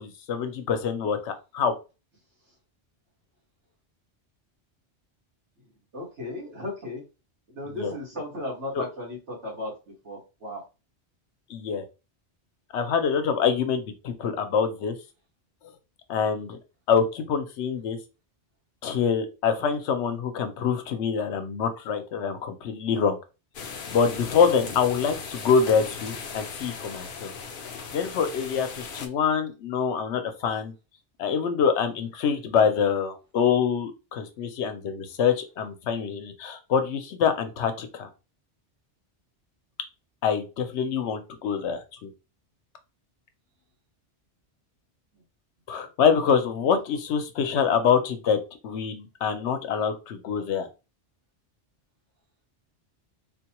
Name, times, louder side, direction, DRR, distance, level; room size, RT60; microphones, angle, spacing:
voice 1, 0.0-1.7 7.8-7.9 8.8-8.9 11.5-11.8 12.7-15.0 16.1-16.6 16.9-18.0 18.8-23.2 23.9-27.3 27.9-30.7 31.2-38.1 40.2-42.1 45.7-50.7, left 6 dB, 80° left, 8 dB, 1.0 m, -25 dB
voice 2, 5.9-7.0 7.5-10.6 45.7-45.9, left 1 dB, 90° right, -4 dB, 2.0 m, -36 dB
sound 1, 23.5-29.1, left 5 dB, 60° left, 0.7 m, -38 dB
3.9 x 2.2 x 2.9 m, 0.29 s
omnidirectional pair, 1.1 m